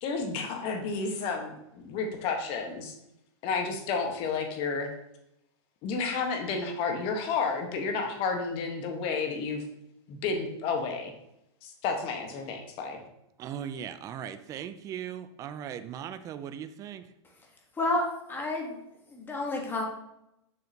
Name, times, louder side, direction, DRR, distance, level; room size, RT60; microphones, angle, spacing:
voice 1, 0.0-2.9 3.4-4.9 5.8-9.6 10.1-11.1 11.6-13.0, left 4 dB, 35° left, 3 dB, 1.3 m, -31 dB
voice 2, 13.4-17.0, right 9 dB, 20° right, 11 dB, 0.4 m, -38 dB
voice 3, 17.8-18.8 19.1-19.8, left 2 dB, 15° left, 0 dB, 1.4 m, -30 dB
6.6 x 6.3 x 2.8 m, 0.82 s
hypercardioid pair, 135°, 15 cm